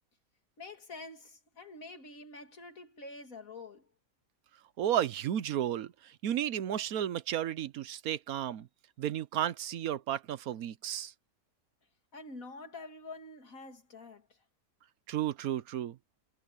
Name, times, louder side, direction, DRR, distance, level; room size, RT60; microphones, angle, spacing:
voice 1, 0.6-3.9 12.1-14.3, left 3 dB, 70° left, 3.1 m, -47 dB
voice 2, 4.8-8.7 9.0-11.1 15.1-15.9, right 11 dB, 85° right, 1.2 m, -33 dB
omnidirectional pair, 1.5 m